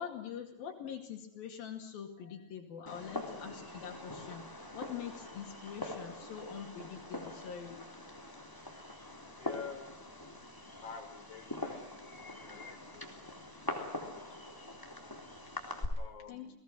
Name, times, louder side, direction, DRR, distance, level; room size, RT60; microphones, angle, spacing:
voice 1, 0.0-4.5 4.8-7.8 16.3-16.5, left 8 dB, 80° left, 2 dB, 4.1 m, -44 dB
Fireworks, 2.9-15.9, left 1 dB, 5° left, 3.2 m, -44 dB
voice 2, 9.4-9.9 10.8-14.6 14.8-15.2 16.0-16.5, left 6 dB, 45° left, 6 dB, 6.0 m, -50 dB
30.0 x 19.0 x 7.6 m, 0.77 s
omnidirectional pair, 4.2 m